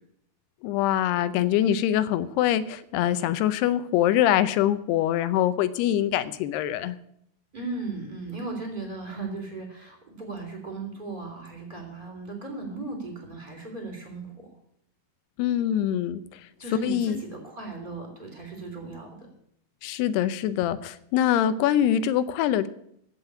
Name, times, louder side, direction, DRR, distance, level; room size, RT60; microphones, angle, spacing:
voice 1, 0.6-7.0 15.4-16.2 16.8-17.2 19.8-22.7, left 11 dB, 80° left, 14 dB, 2.7 m, -24 dB
voice 2, 7.5-14.5 16.6-19.3, right 3 dB, 15° right, 3 dB, 2.9 m, -36 dB
15.5 x 5.9 x 9.9 m, 0.72 s
omnidirectional pair, 4.9 m